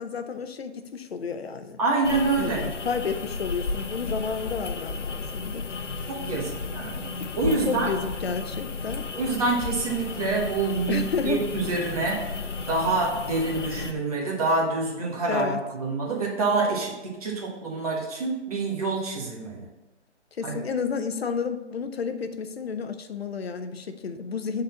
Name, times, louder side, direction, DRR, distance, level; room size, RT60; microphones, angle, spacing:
voice 1, 0.0-1.8 2.4-5.7 7.7-9.1 10.7-11.5 15.3-15.6 20.4-24.6, left 5 dB, 60° left, 9 dB, 0.7 m, -31 dB
voice 2, 1.8-2.6 6.1-7.1 7.4-7.9 9.2-12.2 12.7-19.6 20.4-20.6, right 3 dB, 30° right, -2 dB, 1.5 m, -26 dB
sound 1, 2.0-13.9, left 4 dB, 85° left, 0.9 m, -33 dB
6.7 x 4.2 x 5.6 m, 1.0 s
hypercardioid pair, 170°, 35 cm